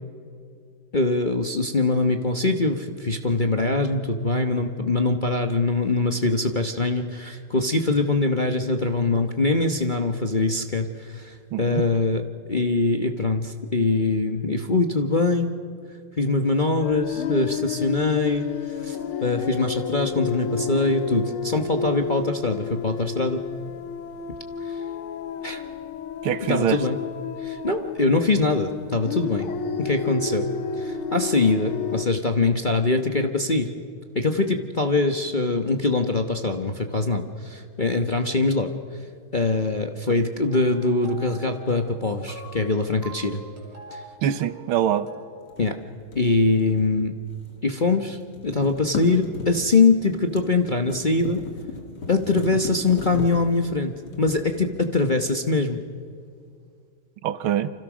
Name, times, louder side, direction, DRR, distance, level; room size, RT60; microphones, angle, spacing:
voice 1, 0.9-12.2 12.5-15.5 16.2-18.5 18.8-23.4 24.6-24.8 25.4-25.6 26.5-27.0 27.4-29.5 29.8-30.5 30.8-33.7 34.1-38.7 39.3-43.4 43.9-44.0 45.6-45.8 46.1-47.2 47.6-51.4 52.1-55.8, left 3 dB, 35° left, 5 dB, 0.9 m, -23 dB
voice 2, 11.5-11.8 26.2-26.8 40.1-40.2 44.2-45.1 57.2-57.7, right 10 dB, 80° right, 13 dB, 1.8 m, -24 dB
sound 1, 16.8-32.1, left 6 dB, 85° left, 1.9 m, -31 dB
sound 2, 40.5-45.7, right 1 dB, 30° right, 5.2 m, -44 dB
sound 3, 45.5-47.7 48.0-55.3, left 3 dB, 55° left, 3.1 m, -37 dB
29.0 x 26.0 x 6.2 m, 2.2 s
omnidirectional pair, 2.3 m